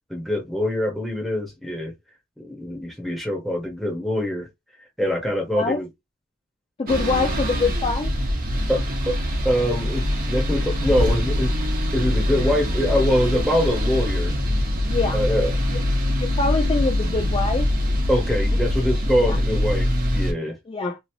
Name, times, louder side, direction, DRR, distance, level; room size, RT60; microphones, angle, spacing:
voice 1, 0.1-1.9 2.4-4.5 5.0-5.9 8.7-9.2 9.4-11.6 11.9-14.4 15.1-15.6 18.1-20.6, equal, ahead, 1.1 m, -24 dB
voice 2, 6.8-8.1 14.9-15.2 15.7-15.8 16.2-17.7 19.2-19.4 20.7-21.0, left 3 dB, 25° left, 0.3 m, -24 dB
sound 1, 6.9-20.3, left 1 dB, 40° right, 1.0 m, -23 dB
3.0 x 2.7 x 2.8 m
head